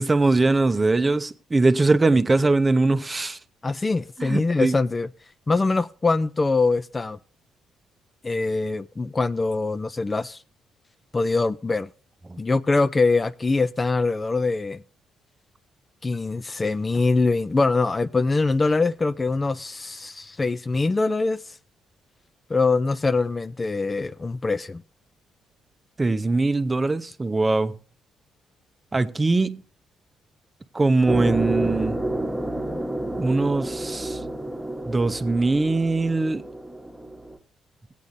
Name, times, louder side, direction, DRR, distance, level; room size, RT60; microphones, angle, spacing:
voice 1, 0.0-3.4 4.2-4.7 26.0-27.7 28.9-29.6 30.7-32.0 33.2-34.2 34.9-36.4, right 3 dB, 20° right, 0.7 m, -21 dB
voice 2, 3.6-5.1 5.5-7.2 8.2-10.4 11.1-11.9 12.4-14.8 16.0-21.6 22.5-24.8, left 3 dB, 25° left, 0.4 m, -23 dB
sound 1, 31.1-37.4, right 1 dB, 5° right, 1.2 m, -29 dB
18.0 x 8.3 x 2.6 m
cardioid pair, 90°, 0 cm